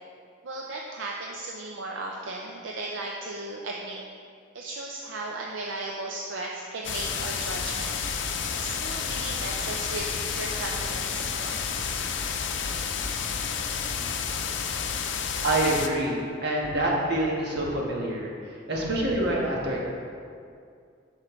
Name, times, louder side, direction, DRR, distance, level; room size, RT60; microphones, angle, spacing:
voice 1, 0.4-4.0 4.5-8.0 8.5-11.9, right 2 dB, 75° right, -1 dB, 0.5 m, -36 dB
sound 1, 6.8-15.9, left 6 dB, 70° left, 0.5 m, -30 dB
voice 2, 15.4-19.8, right 1 dB, 60° right, -3 dB, 1.3 m, -26 dB
8.3 x 6.4 x 3.1 m, 2.4 s
head